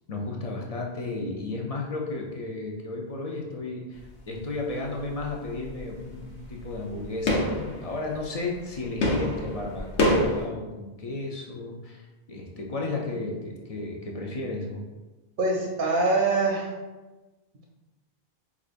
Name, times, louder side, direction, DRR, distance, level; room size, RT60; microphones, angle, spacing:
voice 1, 0.1-4.0 4.3-12.0 12.3-14.8, left 2 dB, 50° left, -1 dB, 0.5 m, -33 dB
sound 1, 3.9-4.4 4.6-10.5, left 1 dB, 85° left, 1.0 m, -28 dB
voice 2, 15.4-16.7, right 3 dB, 60° right, 0 dB, 0.6 m, -24 dB
4.9 x 2.3 x 2.4 m, 1.2 s
omnidirectional pair, 1.1 m